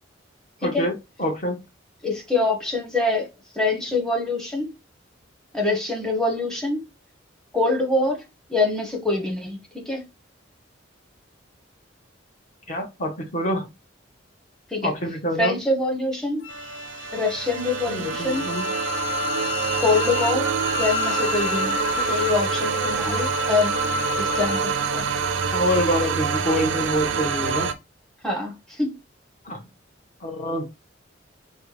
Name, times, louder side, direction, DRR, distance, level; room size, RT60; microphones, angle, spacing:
voice 1, 0.6-0.9 1.2-1.6 12.7-13.7 14.8-15.5 17.9-18.6 25.5-27.7 29.4-29.6 30.2-30.7, equal, 40° left, 1.0 m, -26 dB
voice 2, 2.0-4.7 5.5-6.8 7.5-8.2 8.5-10.0 14.7-14.9 15.4-16.4 17.1-18.5 19.8-20.5 20.8-23.7 24.2-25.1 28.2-28.9, left 2 dB, 5° left, 0.8 m, -25 dB
Wind instrument woodwind instrument, 16.4-24.6, left 9 dB, 75° left, 0.5 m, -31 dB
sound 1, 16.5-27.7, right 6 dB, 80° right, 0.5 m, -26 dB
4.3 x 2.1 x 3.2 m
head